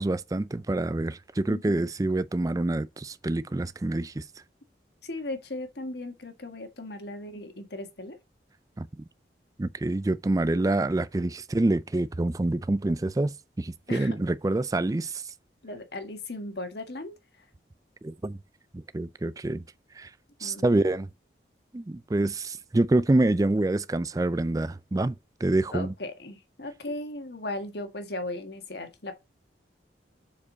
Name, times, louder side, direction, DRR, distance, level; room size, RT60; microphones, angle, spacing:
voice 1, 0.0-4.2 8.8-8.9 9.6-13.3 13.6-15.2 18.0-18.4 18.9-19.6 20.0-20.1 20.4-21.1 21.7-25.1 25.4-25.9, right 2 dB, 20° right, 0.3 m, -26 dB
voice 2, 1.5-1.8 5.0-8.2 13.9-14.2 15.6-17.1 20.4-20.8 25.7-29.1, left 2 dB, 65° left, 1.5 m, -37 dB
7.1 x 5.0 x 4.0 m
head